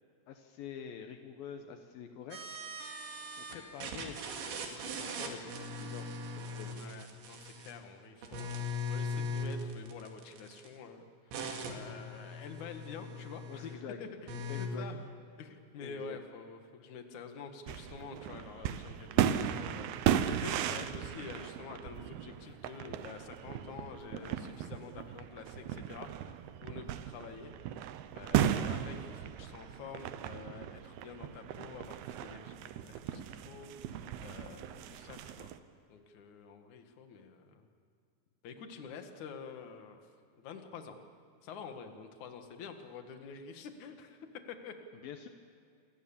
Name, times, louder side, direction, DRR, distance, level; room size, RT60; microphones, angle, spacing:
voice 1, 0.3-2.4 3.4-6.1 6.4-6.8 13.5-14.0 14.5-14.9 15.8-16.2 34.7-35.0 44.9-45.3, left 8 dB, 80° left, 5 dB, 2.1 m, -46 dB
sound 1, 2.3-3.6 3.8-7.8 8.2-10.7 11.3-13.8 14.3-14.7, left 1 dB, 65° right, 4.5 m, -40 dB
voice 2, 6.6-8.5 8.9-13.7 14.0-15.0 15.4-26.3 26.6-27.5 28.1-35.5 35.9-37.7 38.4-40.0 40.4-41.0 41.4-44.7, left 5 dB, 55° left, 6 dB, 2.3 m, -48 dB
sound 2, 17.7-35.6, right 10 dB, 85° right, 2.2 m, -36 dB
28.0 x 22.5 x 7.3 m, 2.5 s
omnidirectional pair, 5.8 m